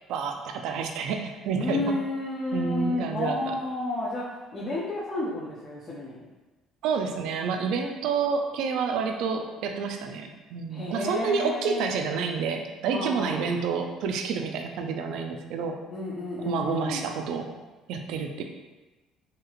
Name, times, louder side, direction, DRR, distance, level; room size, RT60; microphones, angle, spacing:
voice 1, 0.1-1.9 2.5-3.6 6.8-15.8 16.4-17.5 17.9-18.4, right 5 dB, 75° right, 4 dB, 0.3 m, -29 dB
voice 2, 1.6-4.2 4.5-6.2 10.7-11.9 12.9-13.5 15.9-17.0, left 2 dB, 35° left, -7 dB, 0.6 m, -31 dB
2.9 x 2.8 x 2.4 m, 1.2 s
cardioid pair, 110°, 0 cm